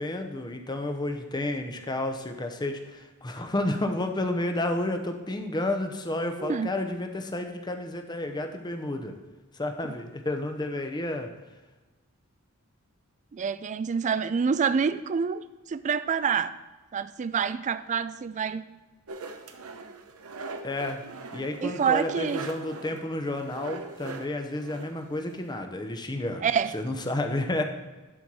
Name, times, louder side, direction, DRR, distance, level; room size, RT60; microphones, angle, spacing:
voice 1, 0.0-9.2 9.6-11.3 20.6-21.0 21.3-27.6, left 1 dB, 20° left, 5 dB, 0.8 m, -31 dB
voice 2, 6.4-6.7 13.3-16.6 16.9-18.7 21.6-22.4 26.4-26.7, right 6 dB, 35° right, 14 dB, 0.3 m, -27 dB
sound 1, 19.1-25.6, right 3 dB, 85° right, 0.8 m, -41 dB
11.0 x 4.4 x 4.7 m, 1.2 s
head